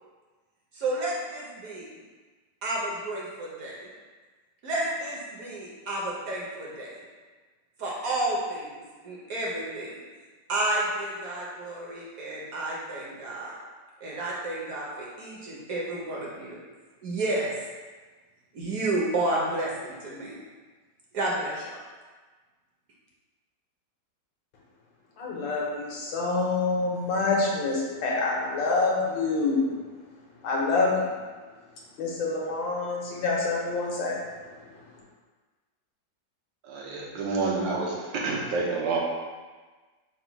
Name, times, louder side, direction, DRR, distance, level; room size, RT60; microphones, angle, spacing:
voice 1, 0.7-1.9 2.6-3.9 4.6-6.9 7.8-10.0 10.5-13.6 14.0-16.6 17.0-17.5 18.5-20.4 21.1-21.8, right 2 dB, 60° right, -4 dB, 1.0 m, -31 dB
voice 2, 25.2-29.7 30.4-31.2 32.0-34.6, left 3 dB, 85° left, -3 dB, 1.6 m, -27 dB
voice 3, 36.6-39.0, right 3 dB, 80° right, -3 dB, 1.4 m, -28 dB
3.9 x 2.2 x 4.5 m, 1.4 s
omnidirectional pair, 2.0 m